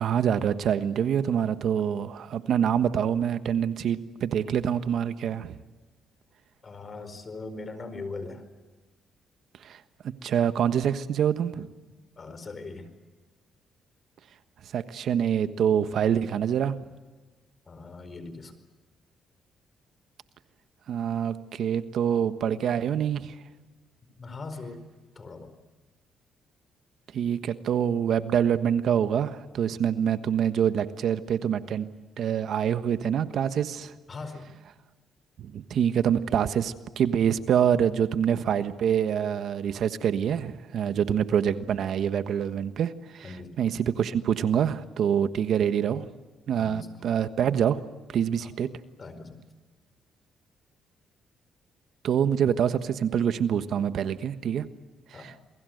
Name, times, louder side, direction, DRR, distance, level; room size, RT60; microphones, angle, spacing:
voice 1, 0.0-5.6 9.6-9.8 10.2-11.7 14.7-16.8 20.9-23.4 27.1-31.9 32.2-33.9 35.4-46.1 46.5-47.8 48.1-48.7 52.0-54.7 55.1-55.3, right 8 dB, 70° right, 11 dB, 1.3 m, -26 dB
voice 2, 6.6-8.4 12.2-12.9 17.7-18.5 24.2-24.8 25.1-25.5 34.1-34.5 40.8-41.0 43.2-43.6 46.6-46.9 48.4-48.5 49.0-49.4 53.7-53.9 55.1-55.3, left 3 dB, 35° left, 11 dB, 4.6 m, -40 dB
28.0 x 22.0 x 7.9 m, 1.3 s
cardioid pair, 90°, 0 cm